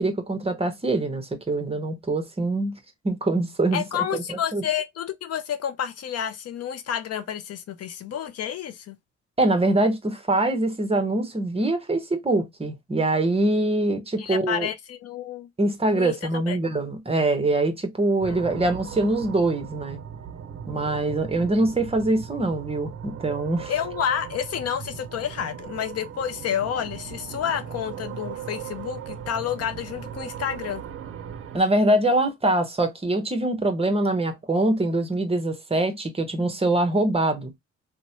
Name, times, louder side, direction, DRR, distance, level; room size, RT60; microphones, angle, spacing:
voice 1, 0.0-2.7 3.0-3.8 4.1-4.6 9.4-14.7 15.6-20.0 20.7-23.7 31.5-37.5, right 2 dB, 20° right, 0.8 m, -24 dB
voice 2, 3.7-9.0 14.2-15.5 15.9-16.6 18.3-18.4 23.7-30.8, left 9 dB, 55° left, 0.5 m, -30 dB
sound 1, 18.2-31.6, right 8 dB, 45° right, 0.5 m, -38 dB
2.9 x 2.1 x 2.7 m
cardioid pair, 90°, 30 cm